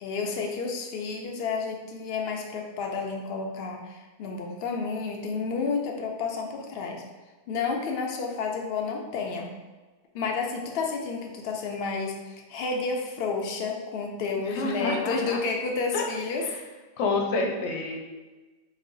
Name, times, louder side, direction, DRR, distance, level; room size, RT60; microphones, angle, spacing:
voice 1, 0.0-7.0 7.5-9.5 10.1-16.4, left 4 dB, 90° left, 1 dB, 0.5 m, -31 dB
voice 2, 14.3-15.4 15.9-16.0 17.0-18.0, left 3 dB, 60° left, 1 dB, 0.8 m, -28 dB
4.1 x 2.0 x 3.8 m, 1.3 s
omnidirectional pair, 1.6 m